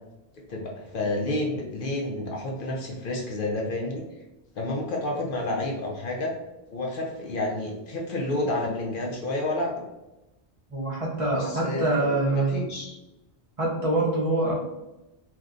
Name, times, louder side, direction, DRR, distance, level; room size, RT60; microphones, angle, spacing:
voice 1, 0.5-4.0 4.6-6.3 6.7-9.7 11.3-13.0, left 2 dB, 65° left, 0 dB, 0.7 m, -30 dB
voice 2, 10.7-12.6 13.6-14.5, right 2 dB, 40° right, -5 dB, 0.7 m, -25 dB
2.6 x 2.2 x 3.6 m, 0.98 s
omnidirectional pair, 1.0 m